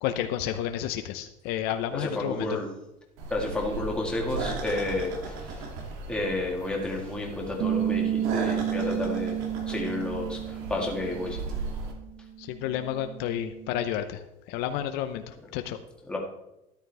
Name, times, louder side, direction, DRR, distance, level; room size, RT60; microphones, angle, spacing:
voice 1, 0.0-2.6 12.4-14.2 14.5-15.8, left 11 dB, 65° left, 8 dB, 0.7 m, -31 dB
voice 2, 1.9-2.7 3.3-5.6 6.1-9.4 9.7-11.5 16.1-16.2, left 2 dB, 5° left, -2 dB, 1.9 m, -31 dB
sound 1, 3.2-11.9, right 3 dB, 85° right, 2.3 m, -37 dB
Bass guitar, 7.6-13.8, right 10 dB, 45° right, 0.6 m, -32 dB
13.0 x 11.0 x 3.4 m, 0.91 s
cardioid pair, 165°, 18 cm